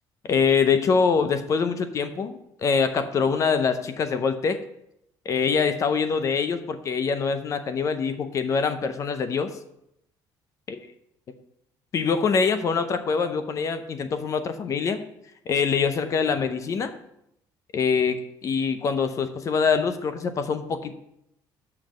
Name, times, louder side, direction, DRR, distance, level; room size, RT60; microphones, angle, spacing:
voice 1, 0.2-4.6 5.3-9.5 10.7-10.8 11.9-15.0 15.5-16.9 17.7-20.9, left 5 dB, 35° left, 10 dB, 0.7 m, -24 dB
6.8 x 5.9 x 6.3 m, 0.79 s
cardioid pair, 155°, 9 cm